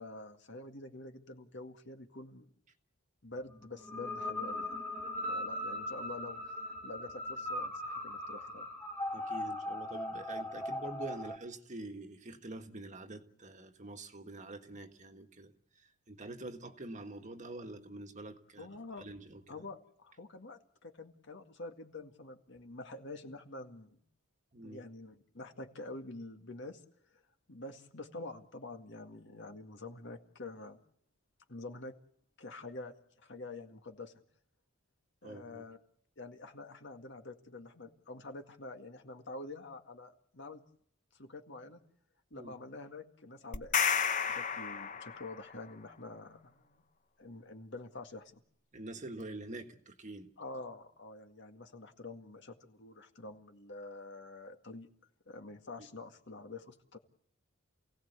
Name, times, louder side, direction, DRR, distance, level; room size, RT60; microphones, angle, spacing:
voice 1, 0.0-2.5 3.2-4.8 5.3-8.7 18.6-19.1 19.5-24.0 24.6-26.8 27.1-27.2 27.5-30.8 31.5-31.9 32.4-34.1 35.2-35.8 36.2-40.6 41.1-41.8 42.3-43.8 44.2-46.8 47.2-48.4 50.4-54.9 55.3-57.0, left 2 dB, 60° left, 2.0 m, -47 dB
sound 1, 3.8-11.4, left 1 dB, 10° left, 2.4 m, -39 dB
voice 2, 9.1-15.5 16.1-18.7 19.0-19.6 24.5-24.8 35.2-35.7 42.3-42.5 48.7-50.3, right 2 dB, 35° right, 1.6 m, -46 dB
sound 2, 43.5-45.5, left 7 dB, 40° left, 0.9 m, -31 dB
28.0 x 17.5 x 8.1 m
head